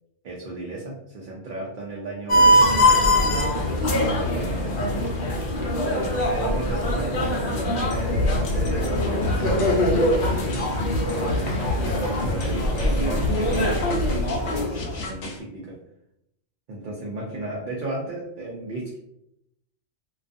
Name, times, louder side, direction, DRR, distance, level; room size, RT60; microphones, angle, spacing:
voice 1, 0.2-5.5 5.9-10.4 11.1-15.7 16.7-19.0, right 2 dB, 60° right, -3 dB, 0.6 m, -35 dB
sound 1, 2.3-15.0, left 1 dB, 55° left, 0.6 m, -22 dB
sound 2, 7.9-15.4, left 2 dB, 85° left, 0.9 m, -31 dB
2.3 x 2.3 x 2.5 m, 0.79 s
omnidirectional pair, 1.2 m